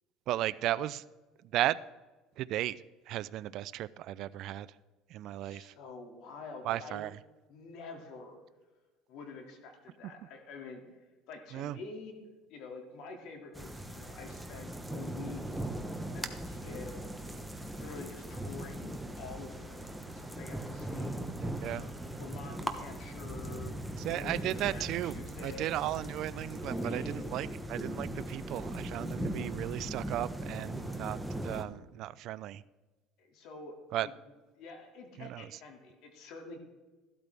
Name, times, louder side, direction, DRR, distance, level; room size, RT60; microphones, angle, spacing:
voice 1, 0.3-1.0 1.5-1.8 2.4-2.8 3.1-4.7 5.1-5.7 6.6-7.1 11.5-11.8 21.4-21.9 24.0-25.2 25.4-31.2 31.4-32.6 33.9-34.1 35.2-35.5, right 14 dB, 60° right, 16 dB, 0.3 m, -35 dB
voice 2, 5.4-7.0 7.5-8.4 9.1-10.8 11.3-12.1 12.5-15.7 16.1-16.9 17.8-21.3 21.7-23.7 24.0-24.4 24.7-25.7 26.8-27.4 33.2-33.7 34.0-34.1 34.6-36.6, left 4 dB, 65° left, 3 dB, 2.2 m, -47 dB
sound 1, 13.5-31.6, right 1 dB, 5° right, 1.0 m, -39 dB
15.0 x 12.0 x 3.4 m, 1.2 s
cardioid pair, 125°, 0 cm